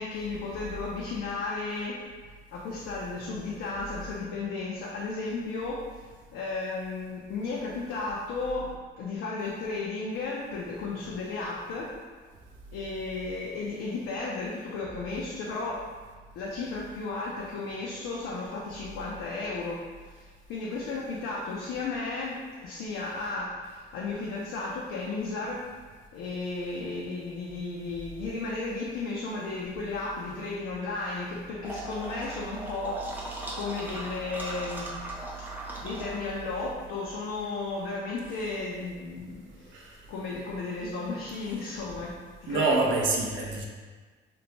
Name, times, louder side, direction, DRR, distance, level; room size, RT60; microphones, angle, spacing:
voice 1, 0.0-2.1 2.5-6.1 6.3-11.9 12.7-15.9 16.4-25.6 26.1-34.9 35.8-42.1 42.4-42.7 43.3-43.4, left 3 dB, 90° left, -4 dB, 0.4 m, -34 dB
sound 1, 31.6-36.7, right 2 dB, 10° right, 0.5 m, -38 dB
voice 2, 42.5-43.7, right 3 dB, 70° right, -1 dB, 0.5 m, -26 dB
2.9 x 2.1 x 2.8 m, 1.5 s
cardioid pair, 90°, 20 cm